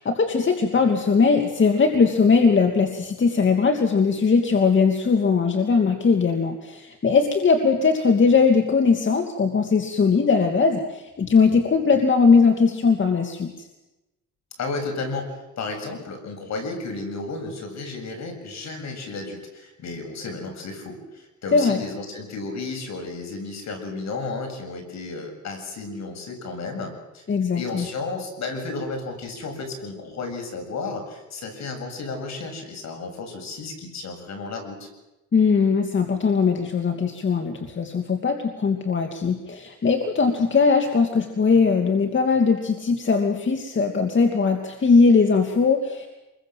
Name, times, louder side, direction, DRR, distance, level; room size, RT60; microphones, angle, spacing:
voice 1, 0.0-13.5 21.5-21.8 27.3-27.9 35.3-46.1, left 5 dB, 40° left, 5 dB, 2.6 m, -20 dB
voice 2, 14.6-27.2 27.5-34.9, left 3 dB, 65° left, 4 dB, 7.5 m, -33 dB
27.5 x 22.5 x 7.6 m, 1.0 s
cardioid pair, 90°, 30 cm